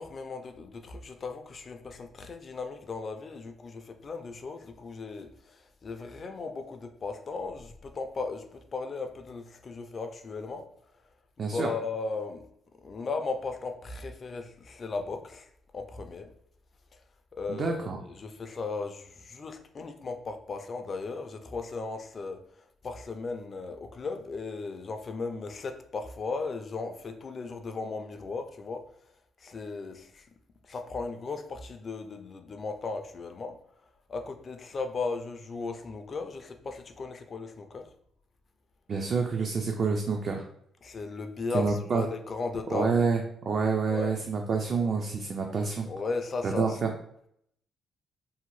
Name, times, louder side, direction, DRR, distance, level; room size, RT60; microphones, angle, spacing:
voice 1, 0.0-10.7 11.4-12.5 12.8-15.5 15.7-16.3 17.4-22.4 22.8-28.8 29.4-30.2 30.7-33.6 34.1-37.9 40.8-43.1 43.9-44.2 45.9-46.8, left 4 dB, 40° left, 6 dB, 0.3 m, -36 dB
voice 2, 11.4-11.7 17.5-18.0 38.9-40.4 41.5-42.0 42.7-45.9 46.4-46.9, right 5 dB, 50° right, 2 dB, 0.3 m, -28 dB
2.7 x 2.0 x 3.0 m, 0.72 s
cardioid pair, 90°, 0 cm